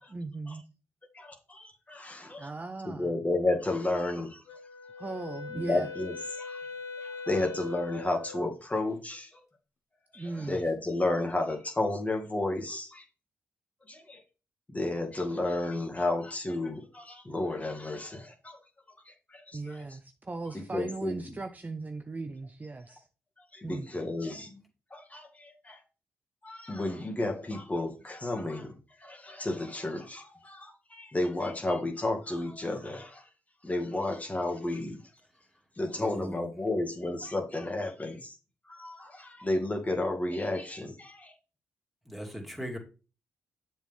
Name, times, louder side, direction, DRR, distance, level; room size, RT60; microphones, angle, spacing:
voice 1, 0.1-0.6 2.4-3.1 5.0-5.9 10.2-10.6 19.5-23.0 23.6-23.9, right 3 dB, 30° right, 0.7 m, -38 dB
voice 2, 1.1-2.5 2.8-4.6 5.5-6.6 7.0-9.4 10.1-13.0 13.9-14.2 14.7-18.6 19.1-20.0 20.5-21.4 23.5-24.6 24.9-25.8 26.4-33.3 33.6-35.0 35.8-38.4 38.6-41.3, left 2 dB, 25° left, 2.1 m, -32 dB
Wind instrument woodwind instrument, 4.5-8.5, left 4 dB, 75° left, 1.4 m, -41 dB
voice 3, 35.9-36.5 42.1-42.8, equal, ahead, 2.7 m, -38 dB
7.1 x 5.9 x 3.6 m
supercardioid pair, 55°, 6 cm